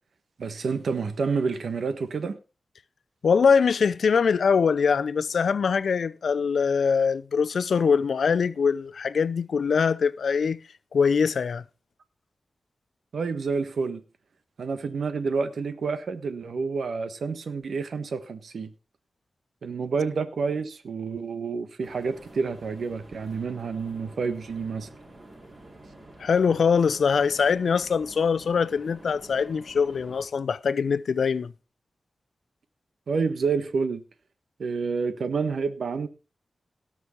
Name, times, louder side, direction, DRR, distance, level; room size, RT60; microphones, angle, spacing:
voice 1, 0.4-2.4 13.1-14.0 14.6-18.7 19.6-24.9 33.1-34.0 34.6-36.1, right 5 dB, 85° right, 1.3 m, -29 dB
voice 2, 3.2-10.6 10.9-11.6 26.2-31.5, left 6 dB, 85° left, 0.6 m, -23 dB
sound 1, 21.8-30.3, right 1 dB, 35° right, 4.7 m, -48 dB
18.0 x 6.3 x 4.5 m
wide cardioid pair, 70°, 0 cm